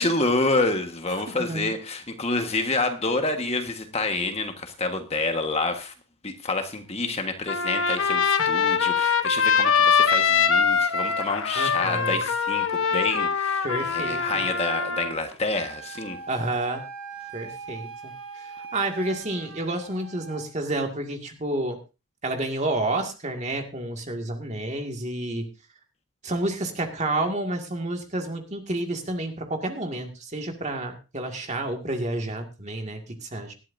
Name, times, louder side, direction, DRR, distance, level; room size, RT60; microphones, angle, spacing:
voice 1, 0.0-5.9 6.2-16.2, left 2 dB, 30° left, 6 dB, 1.4 m, -28 dB
voice 2, 1.2-1.7 11.5-12.3 13.6-14.4 16.3-16.8 17.3-21.8 22.2-25.5 26.2-33.5, right 2 dB, 30° right, 4 dB, 2.1 m, -30 dB
Trumpet, 7.5-15.1, left 6 dB, 65° left, 1.1 m, -23 dB
Wind instrument woodwind instrument, 15.5-20.5, right 4 dB, 90° right, 4.6 m, -41 dB
18.5 x 12.5 x 2.7 m, 0.29 s
head